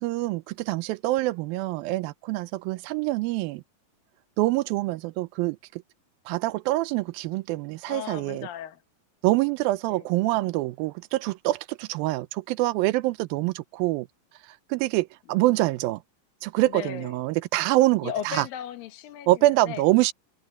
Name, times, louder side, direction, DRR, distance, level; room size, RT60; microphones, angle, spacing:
voice 1, 0.0-3.6 4.4-5.8 6.3-8.5 9.2-14.1 14.7-16.0 16.4-18.5 19.3-20.1, right 18 dB, 90° right, 2.5 m, -25 dB
voice 2, 7.9-8.8 9.9-10.1 16.6-17.2 18.0-19.8, left 9 dB, 80° left, 3.0 m, -36 dB
omnidirectional pair, 4.1 m